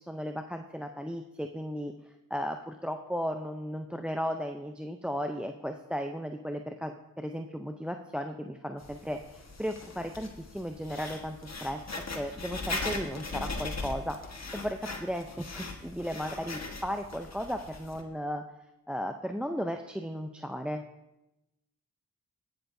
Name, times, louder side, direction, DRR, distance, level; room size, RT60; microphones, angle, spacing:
voice 1, 0.0-1.9 2.3-18.4 18.9-20.8, equal, 5° right, 6 dB, 0.5 m, -35 dB
Writing, 8.8-18.0, left 3 dB, 45° left, 1.4 m, -39 dB
17.5 x 6.9 x 2.6 m, 0.94 s
cardioid pair, 40°, 36 cm